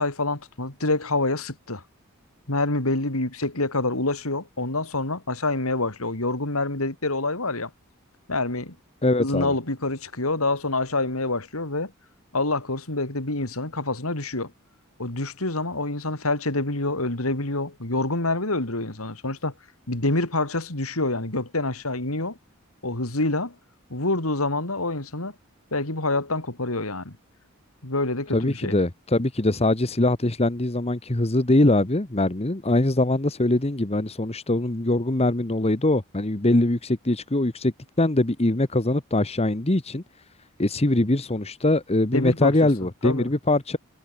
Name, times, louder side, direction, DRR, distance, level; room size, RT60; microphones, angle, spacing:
voice 1, 0.0-1.8 2.5-7.7 8.3-8.7 9.2-11.9 12.3-14.5 15.0-19.5 19.9-22.4 22.8-23.5 23.9-25.3 25.7-27.1 27.8-28.8 42.1-42.7 43.0-43.3, left 2 dB, 75° left, 3.8 m, -26 dB
voice 2, 9.0-9.5 28.3-40.0 40.6-43.8, left 1 dB, 30° left, 1.2 m, -22 dB
head